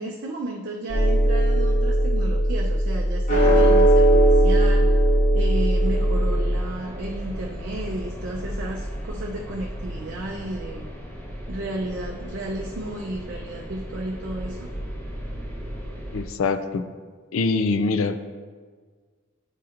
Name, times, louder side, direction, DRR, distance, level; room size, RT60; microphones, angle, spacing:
voice 1, 0.0-5.0 5.3-10.9 11.5-14.7, right 1 dB, 50° right, -1 dB, 0.5 m, -33 dB
sound 1, 0.9-6.6, right 1 dB, 35° left, 1.0 m, -18 dB
sound 2, 5.8-16.3, equal, 10° left, 0.8 m, -35 dB
voice 2, 16.1-16.8 17.3-18.3, left 4 dB, 65° left, 10 dB, 0.4 m, -24 dB
9.8 x 4.2 x 2.5 m, 1.5 s
head